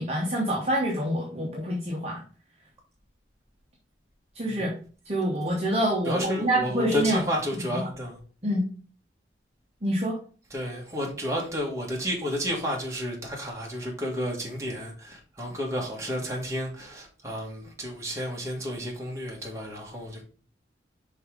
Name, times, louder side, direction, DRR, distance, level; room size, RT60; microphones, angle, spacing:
voice 1, 0.0-2.2 4.3-4.7 5.1-7.2 7.7-7.8 8.4-8.7 9.8-10.2, right 1 dB, 35° right, 1.0 m, -26 dB
voice 2, 6.0-8.2 10.5-20.2, equal, 15° right, 1.6 m, -31 dB
5.4 x 3.7 x 5.1 m
head